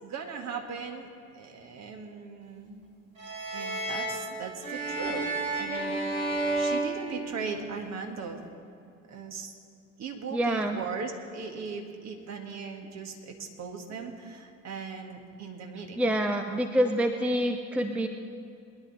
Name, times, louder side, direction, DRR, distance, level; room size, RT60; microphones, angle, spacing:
voice 1, 0.0-2.8 3.5-5.3 5.5-6.0 6.6-8.5 9.1-9.5 10.0-16.0 16.8-16.9, right 5 dB, 40° right, 3 dB, 1.9 m, -38 dB
sound 1, 3.2-7.8, right 2 dB, 80° right, 2.4 m, -31 dB
voice 2, 10.3-10.8 16.0-18.1, equal, 5° right, 6 dB, 0.7 m, -26 dB
21.5 x 10.5 x 4.2 m, 2.5 s
figure-of-eight pair, 60°, 39 cm